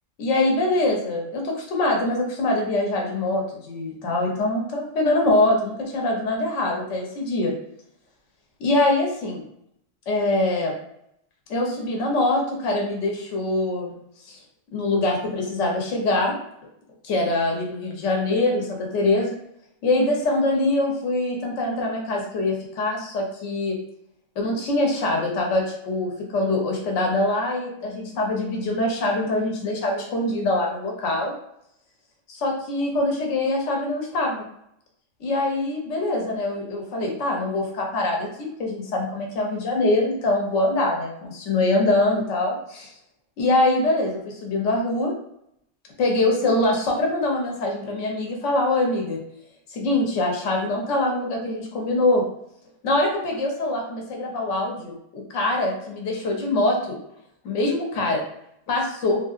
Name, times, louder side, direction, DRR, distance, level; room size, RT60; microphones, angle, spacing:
voice 1, 0.2-7.5 8.6-9.4 10.1-10.7 11.5-13.9 14.3-14.4 14.7-16.4 17.0-19.4 19.8-23.8 24.4-31.3 32.3-34.4 35.2-38.3 38.6-42.9 43.4-45.1 46.0-49.2 49.7-52.2 52.8-57.0 57.4-58.2 58.7-59.2, left 2 dB, 70° left, 0 dB, 1.1 m, -23 dB
3.1 x 2.7 x 2.4 m, 0.75 s
omnidirectional pair, 1.3 m